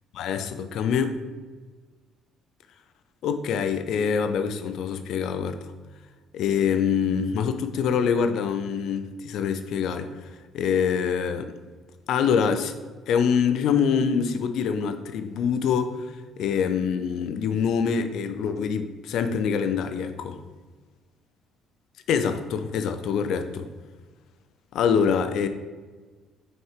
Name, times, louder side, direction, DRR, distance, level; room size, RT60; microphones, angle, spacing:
voice 1, 0.1-1.2 3.2-5.6 6.3-10.1 10.5-11.5 12.1-12.7 13.1-16.0 16.4-20.4 22.1-23.7 24.7-25.5, left 7 dB, 65° left, 9 dB, 0.6 m, -25 dB
6.6 x 4.4 x 4.9 m, 1.4 s
hypercardioid pair, 50°, 0 cm